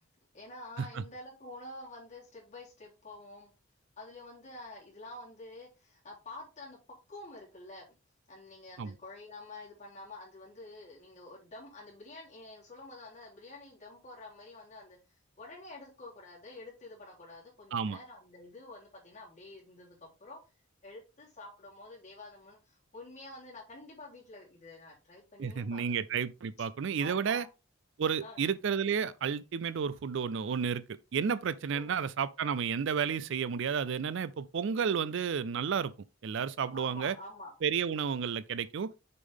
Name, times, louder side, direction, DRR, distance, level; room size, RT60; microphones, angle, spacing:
voice 1, 0.3-3.5 4.0-6.8 7.1-7.9 8.3-20.4 20.8-25.8 27.0-27.5 28.2-28.4 31.7-32.0 36.7-37.5, left 2 dB, 35° left, 3.5 m, -48 dB
voice 2, 25.4-27.5 28.0-30.8 31.1-35.9 36.2-37.2 37.6-38.9, right 6 dB, 60° right, 0.4 m, -31 dB
6.8 x 5.3 x 3.6 m
head